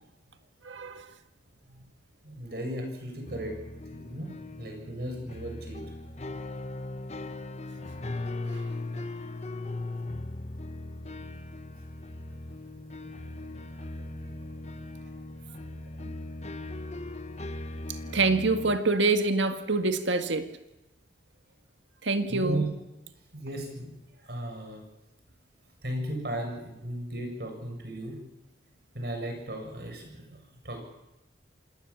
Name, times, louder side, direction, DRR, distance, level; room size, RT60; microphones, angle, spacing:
voice 1, 0.6-1.1 18.1-20.6 22.0-22.7, right 3 dB, 85° right, 2.0 m, -26 dB
voice 2, 2.2-3.6 3.9-4.3 4.6-5.9 6.3-6.5 8.6-8.7 9.9-10.0 15.5-15.6 22.3-22.7 23.3-24.8 25.8-28.2 28.9-30.2 30.6-30.8, right 1 dB, 55° right, 7.4 m, -36 dB
sound 1, 3.3-18.8, left 2 dB, 35° left, 1.0 m, -39 dB
27.0 x 19.0 x 7.4 m
head